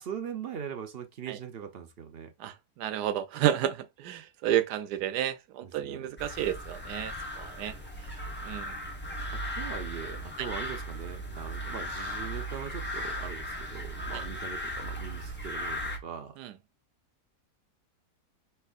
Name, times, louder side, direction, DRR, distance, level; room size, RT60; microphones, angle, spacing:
voice 1, 0.0-2.3 5.6-6.1 9.3-16.3, right 8 dB, 65° right, 0.6 m, -41 dB
voice 2, 2.4-7.7 8.4-8.7 16.4-16.5, right 11 dB, 80° right, 1.2 m, -31 dB
sound 1, 6.2-16.0, equal, 10° left, 0.8 m, -37 dB
5.6 x 3.3 x 2.4 m
omnidirectional pair, 1.8 m